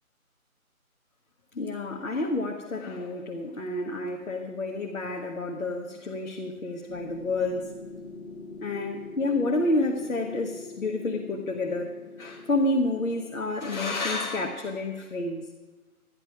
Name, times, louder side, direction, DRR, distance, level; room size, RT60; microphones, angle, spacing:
voice 1, 1.5-7.8 8.6-15.5, left 2 dB, 70° left, 0 dB, 1.7 m, -29 dB
sound 1, 6.9-13.3, left 2 dB, 50° left, 1.3 m, -43 dB
13.0 x 10.5 x 4.9 m, 1.3 s
figure-of-eight pair, 165°, 43 cm